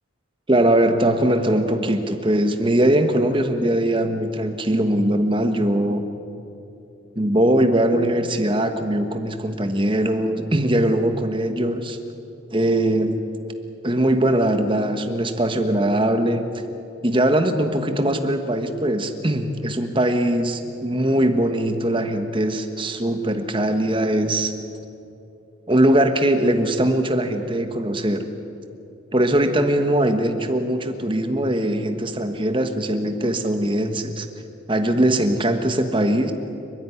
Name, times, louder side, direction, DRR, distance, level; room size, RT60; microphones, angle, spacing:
voice 1, 0.5-6.1 7.2-12.0 12.5-13.2 13.8-16.4 17.0-24.5 25.7-28.3 29.1-34.3 34.7-36.3, right 1 dB, 25° right, 7 dB, 1.3 m, -21 dB
30.0 x 10.5 x 9.8 m, 2.8 s
head